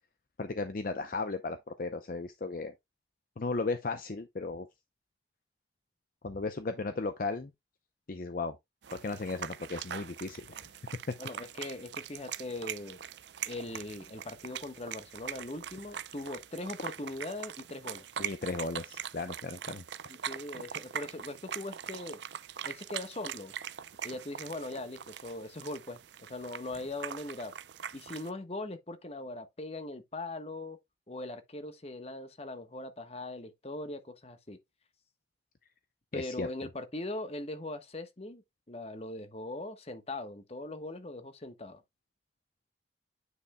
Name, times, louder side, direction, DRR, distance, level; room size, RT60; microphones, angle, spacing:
voice 1, 0.4-2.7 3.4-4.7 6.2-7.5 8.1-8.5 9.0-10.7 18.2-19.8 36.1-36.5, left 3 dB, 50° left, 0.6 m, -35 dB
sound 1, 8.8-28.3, right 9 dB, 75° right, 0.5 m, -42 dB
voice 2, 11.2-13.0 13.5-18.0 20.1-22.2 22.6-23.5 24.0-27.5 27.9-30.8 31.1-34.6 36.1-41.8, left 2 dB, 35° left, 1.1 m, -40 dB
9.5 x 5.5 x 2.2 m
head